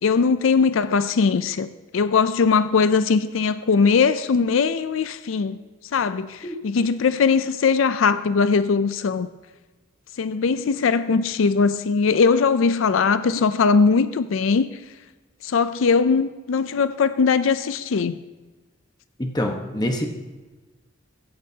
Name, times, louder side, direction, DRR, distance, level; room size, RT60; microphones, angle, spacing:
voice 1, 0.0-1.7 1.9-5.6 5.9-9.3 10.2-14.7 15.4-18.2, left 5 dB, 80° left, 13 dB, 0.4 m, -20 dB
voice 2, 19.2-20.1, left 1 dB, 20° left, 3 dB, 1.2 m, -25 dB
15.5 x 14.0 x 2.8 m, 1.2 s
head